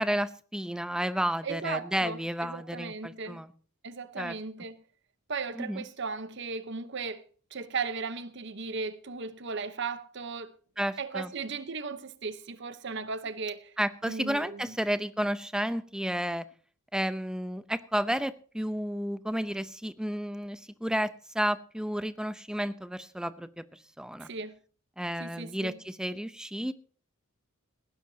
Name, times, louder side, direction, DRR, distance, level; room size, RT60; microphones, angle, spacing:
voice 1, 0.0-3.5 4.2-4.3 5.5-5.8 10.8-11.3 13.8-16.5 16.9-23.6 24.0-24.3 25.0-26.7, equal, 5° right, 0.6 m, -32 dB
voice 2, 1.4-3.4 3.8-4.8 5.3-7.2 7.5-10.5 11.0-13.7 14.0-14.7 24.2-24.6 25.2-25.8, right 4 dB, 55° right, 0.9 m, -36 dB
19.0 x 16.0 x 2.8 m
head